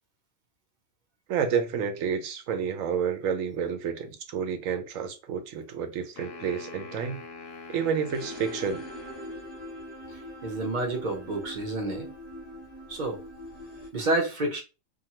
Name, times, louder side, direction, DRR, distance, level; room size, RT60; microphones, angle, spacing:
voice 1, 1.3-7.2 7.7-8.8, right 7 dB, 80° right, 1.0 m, -30 dB
sound 1, 6.2-9.5, left 3 dB, 60° left, 0.7 m, -44 dB
sound 2, 8.1-13.9, left 1 dB, 10° right, 0.7 m, -42 dB
voice 2, 10.1-12.1 12.9-13.2 13.9-14.6, right 2 dB, 45° right, 0.7 m, -29 dB
2.6 x 2.3 x 2.8 m
omnidirectional pair, 1.4 m